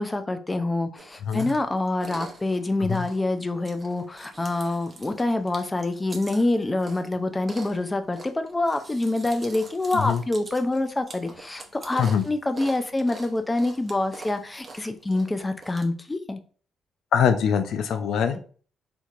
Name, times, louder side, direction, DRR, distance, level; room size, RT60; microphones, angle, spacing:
voice 1, 0.0-16.4, left 2 dB, 20° left, 8 dB, 0.5 m, -26 dB
Chewing mastication, 1.0-15.8, right 3 dB, 30° right, 0.9 m, -45 dB
voice 2, 1.2-1.5 2.9-3.1 9.9-10.2 12.0-12.2 17.1-18.4, left 7 dB, 75° left, 9 dB, 0.5 m, -23 dB
4.4 x 2.8 x 2.5 m, 0.42 s
cardioid pair, 90°, 0 cm